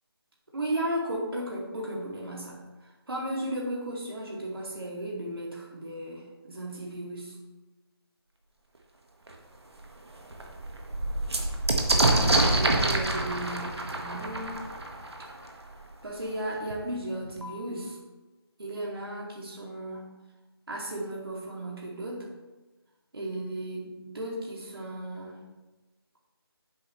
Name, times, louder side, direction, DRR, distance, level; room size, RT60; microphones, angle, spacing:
voice 1, 0.5-7.4 11.9-14.6 16.0-18.0 18.6-20.0 20.7-22.3 23.1-25.4, right 1 dB, 65° right, -4 dB, 2.7 m, -35 dB
sound 1, 9.3-9.4 9.8-9.9 10.2-15.7 16.7-16.8 17.0-17.7, right 2 dB, 80° right, 1.7 m, -27 dB
9.5 x 7.7 x 3.3 m, 1.1 s
figure-of-eight pair, 175°, 14 cm